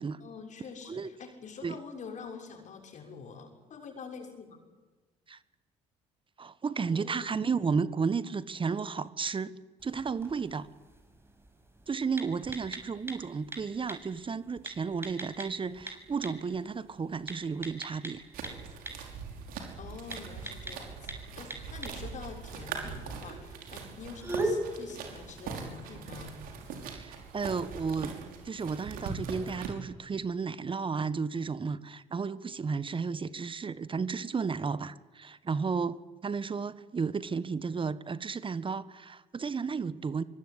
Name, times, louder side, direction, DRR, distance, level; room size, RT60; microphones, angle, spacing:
voice 1, 0.2-4.6 6.8-7.4 19.8-26.4, left 5 dB, 55° left, 6.5 m, -46 dB
voice 2, 6.4-10.7 11.9-18.2 26.8-28.1 28.4-40.2, right 5 dB, 35° right, 1.4 m, -33 dB
sound 1, 9.8-28.1, right 1 dB, 15° right, 6.6 m, -42 dB
sound 2, 18.3-29.7, right 5 dB, 70° right, 5.6 m, -41 dB
24.5 x 23.5 x 9.9 m
hypercardioid pair, 55°, 15 cm